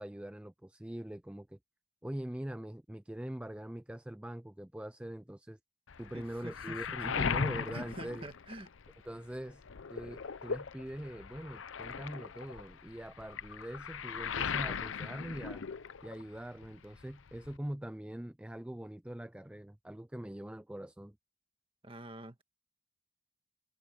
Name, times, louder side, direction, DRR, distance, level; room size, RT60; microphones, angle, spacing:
voice 1, 0.0-1.6 2.0-5.6 6.0-8.3 9.0-9.6 9.9-15.7 16.0-21.2, right 1 dB, 5° right, 0.3 m, -43 dB
Waves surf, 5.9-9.1 9.4-16.4 16.6-17.6, left 6 dB, 80° left, 0.7 m, -38 dB
voice 2, 6.1-7.2 7.7-8.7 21.8-22.4, right 1 dB, 25° right, 1.9 m, -47 dB
head